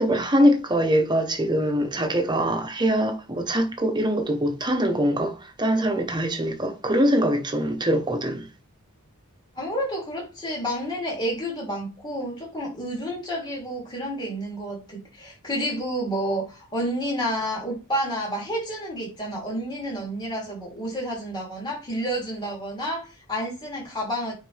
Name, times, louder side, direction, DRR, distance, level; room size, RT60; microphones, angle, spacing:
voice 1, 0.0-8.5, equal, 20° right, 1.0 m, -23 dB
voice 2, 9.5-24.3, equal, 20° left, 3.2 m, -30 dB
9.0 x 4.0 x 3.4 m
head